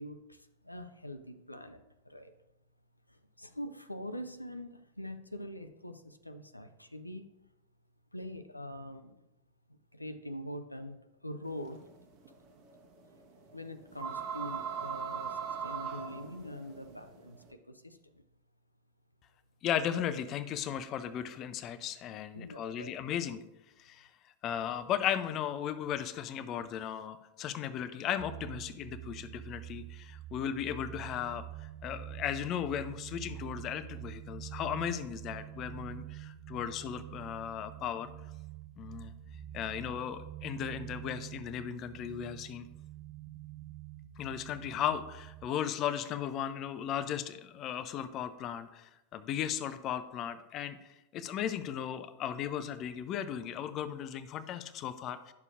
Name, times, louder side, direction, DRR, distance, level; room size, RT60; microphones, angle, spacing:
voice 1, 0.0-2.3 3.1-7.3 8.1-9.2 9.9-11.8 13.5-18.2 22.3-22.9, equal, 85° left, 9 dB, 0.4 m, -44 dB
sound 1, 11.5-17.5, right 6 dB, 40° right, 1.1 m, -40 dB
voice 2, 19.6-23.4 23.8-24.1 24.4-38.1 38.8-39.1 39.5-42.7 44.2-50.8 51.1-55.3, left 9 dB, 35° left, 12 dB, 0.5 m, -36 dB
sound 2, 28.2-45.5, right 13 dB, 15° right, 0.6 m, -46 dB
10.5 x 6.7 x 2.4 m, 0.95 s
figure-of-eight pair, 90°, 0 cm